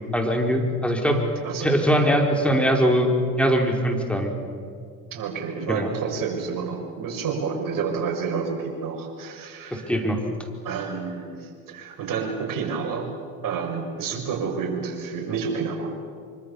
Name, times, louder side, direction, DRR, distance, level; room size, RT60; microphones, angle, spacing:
voice 1, 0.1-1.2 1.6-3.1 3.4-4.3 5.7-5.9 9.7-10.2, equal, 5° left, 2 dB, 5.1 m, -21 dB
voice 2, 1.4-2.1 5.1-9.9 10.6-13.1 13.4-15.9, right 5 dB, 55° right, 2 dB, 6.8 m, -29 dB
26.0 x 25.0 x 7.3 m, 2.2 s
hypercardioid pair, 70°, 40 cm